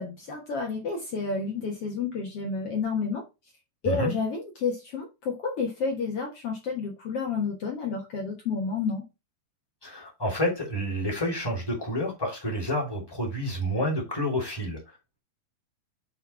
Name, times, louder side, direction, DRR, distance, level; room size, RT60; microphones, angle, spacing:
voice 1, 0.0-3.2 3.8-9.0, left 4 dB, 55° left, 1.9 m, -30 dB
voice 2, 9.8-14.8, equal, 5° left, 2.3 m, -29 dB
8.8 x 4.0 x 4.3 m
omnidirectional pair, 4.1 m